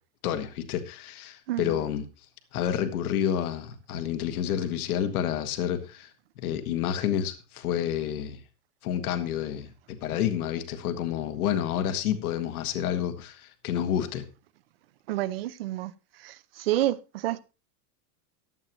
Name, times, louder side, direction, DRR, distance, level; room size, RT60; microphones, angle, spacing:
voice 1, 0.2-2.0 2.5-6.1 6.4-8.4 8.8-14.2, left 10 dB, 60° left, 1.7 m, -29 dB
voice 2, 1.5-1.8 15.1-15.9 16.2-17.4, right 14 dB, 40° right, 0.5 m, -29 dB
15.0 x 11.0 x 3.0 m
supercardioid pair, 175°, 49 cm